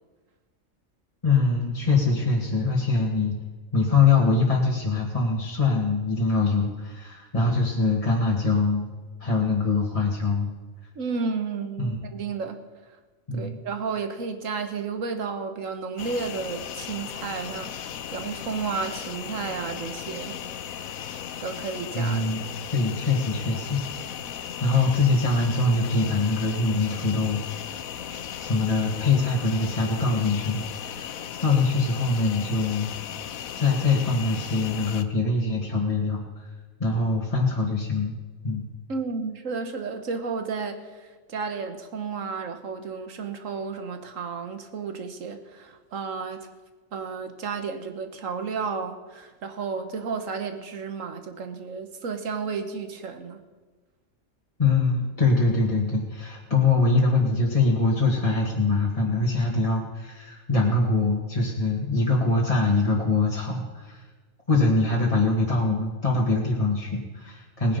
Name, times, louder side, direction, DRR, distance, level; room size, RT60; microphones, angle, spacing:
voice 1, 1.2-3.3 3.7-8.9 9.2-10.5 11.8-12.0 13.3-13.6 21.1-21.2 21.9-23.8 24.6-27.4 28.1-31.1 31.4-32.9 33.6-36.2 36.8-38.2 38.4-38.6 54.6-64.0 64.5-67.8, left 3 dB, 25° left, -3 dB, 1.8 m, -23 dB
voice 2, 11.0-12.6 13.3-20.4 21.4-22.3 38.9-46.4 46.9-53.4, right 5 dB, 70° right, 7 dB, 1.6 m, -32 dB
sound 1, 16.0-35.0, left 9 dB, 90° left, 1.2 m, -36 dB
19.0 x 9.9 x 5.4 m, 1.3 s
omnidirectional pair, 1.4 m